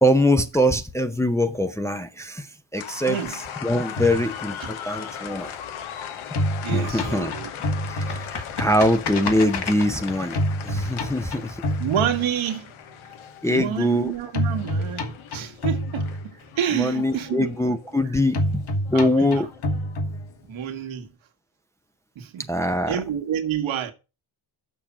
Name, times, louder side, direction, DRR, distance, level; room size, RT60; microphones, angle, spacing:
voice 1, 0.0-3.2 3.6-5.5 6.7-7.3 7.9-11.6 13.4-14.1 16.7-19.5 22.5-23.0, left 1 dB, 5° left, 0.6 m, -23 dB
sound 1, 2.7-20.4, left 9 dB, 75° left, 1.2 m, -39 dB
voice 2, 3.1-3.4 4.6-4.7 6.6-7.5 11.8-12.7 13.5-16.1 16.6-17.5 18.9-19.5 20.4-21.1 22.1-22.5 22.9-23.9, right 9 dB, 70° right, 1.7 m, -28 dB
sound 2, 3.9-5.9 6.2-12.7 14.3-16.7 18.3-20.7, left 1 dB, 55° left, 1.7 m, -28 dB
7.0 x 5.7 x 7.3 m
cardioid pair, 125°, 49 cm